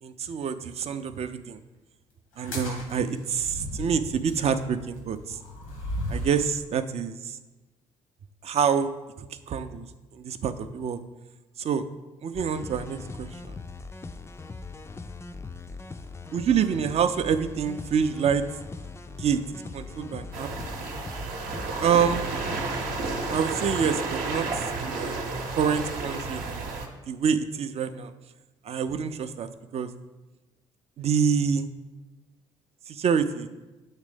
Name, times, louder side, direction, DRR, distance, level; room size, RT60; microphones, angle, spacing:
voice 1, 0.0-1.6 2.4-5.4 6.1-7.4 8.4-8.9 9.2-9.9 10.1-11.0 11.6-11.8 12.2-13.6 16.3-18.4 19.1-20.5 21.8-22.3 23.0-25.2 25.6-26.6 27.1-28.1 28.6-29.9 31.0-31.7 32.9-33.5, right 7 dB, 40° right, 11 dB, 0.5 m, -27 dB
sound 1, 2.3-6.6, left 1 dB, 85° left, 1.1 m, -36 dB
sound 2, 12.3-23.5, left 3 dB, 15° left, 0.4 m, -41 dB
sound 3, 20.3-26.9, right 3 dB, 55° right, 0.8 m, -32 dB
8.1 x 3.3 x 4.9 m, 1.1 s
figure-of-eight pair, 45°, 16 cm